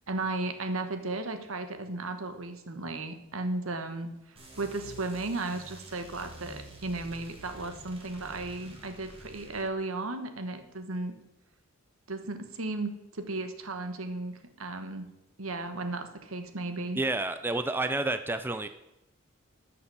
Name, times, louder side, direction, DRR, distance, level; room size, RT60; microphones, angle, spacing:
voice 1, 0.1-11.1 12.1-15.1 15.4-17.0, right 2 dB, 80° right, 8 dB, 1.2 m, -35 dB
sound 1, 4.4-9.7, right 1 dB, 25° right, 1.8 m, -48 dB
voice 2, 17.0-18.7, right 2 dB, 10° right, 9 dB, 0.4 m, -29 dB
12.5 x 5.9 x 5.6 m, 0.91 s
head